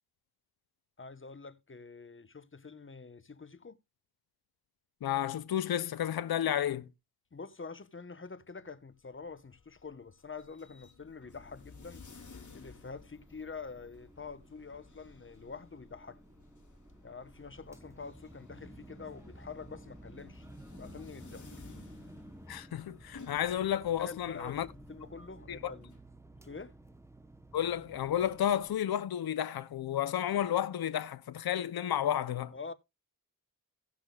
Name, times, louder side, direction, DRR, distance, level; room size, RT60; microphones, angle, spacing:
voice 1, 1.0-3.8 7.3-12.0 12.5-16.2 17.0-20.5 20.7-21.5 24.0-25.9 26.4-26.7 32.5-32.7, left 4 dB, 35° left, 1.0 m, -46 dB
voice 2, 5.0-6.9 22.5-24.7 25.5-25.7 27.5-32.5, left 10 dB, 80° left, 0.7 m, -32 dB
sound 1, 8.9-26.0, left 4 dB, 50° left, 2.5 m, -56 dB
sound 2, 11.2-28.8, right 1 dB, 10° right, 0.9 m, -54 dB
17.0 x 6.1 x 2.3 m
cardioid pair, 55°, 37 cm